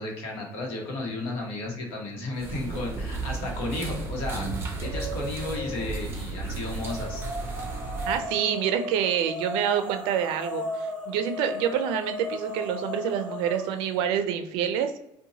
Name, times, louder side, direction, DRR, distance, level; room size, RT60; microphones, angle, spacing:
voice 1, 0.0-4.5 4.8-7.2, left 2 dB, 85° left, 0 dB, 0.9 m, -33 dB
sound 1, 2.4-8.3, right 3 dB, 25° right, 0.6 m, -34 dB
sound 2, 3.2-3.8 4.2-6.0 6.8-13.9, left 1 dB, 10° left, 0.9 m, -36 dB
voice 2, 8.0-15.0, right 9 dB, 90° right, 8 dB, 0.4 m, -27 dB
2.7 x 2.2 x 2.8 m, 0.82 s
cardioid pair, 155°, 9 cm